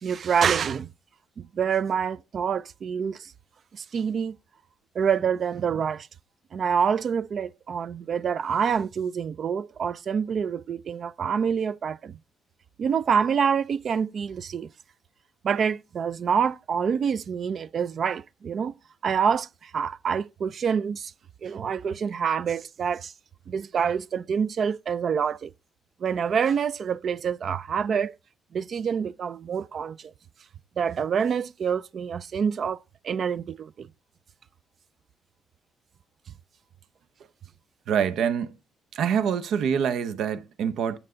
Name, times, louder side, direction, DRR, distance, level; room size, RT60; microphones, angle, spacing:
voice 1, 0.0-0.9 1.4-3.3 3.7-4.4 4.9-6.1 6.5-12.2 12.8-14.7 15.4-18.7 19.0-21.1 21.4-23.1 23.5-25.5 26.0-28.1 28.5-30.1 30.8-32.8 33.0-33.9, right 7 dB, 55° right, 0.4 m, -26 dB
voice 2, 37.9-38.5 38.9-41.0, right 8 dB, 80° right, 0.8 m, -25 dB
9.6 x 9.0 x 3.8 m
cardioid pair, 90°, 0 cm